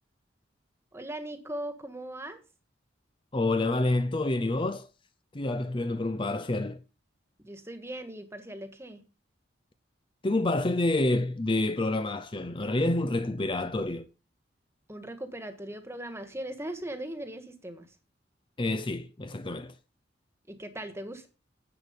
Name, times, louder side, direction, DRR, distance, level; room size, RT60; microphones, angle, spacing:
voice 1, 0.9-2.4 7.4-9.0 14.9-17.9 20.5-21.3, right 1 dB, 15° right, 1.6 m, -39 dB
voice 2, 3.3-4.9 5.3-6.8 10.2-14.1 18.6-19.7, left 2 dB, 25° left, 0.6 m, -28 dB
11.0 x 8.1 x 5.2 m
head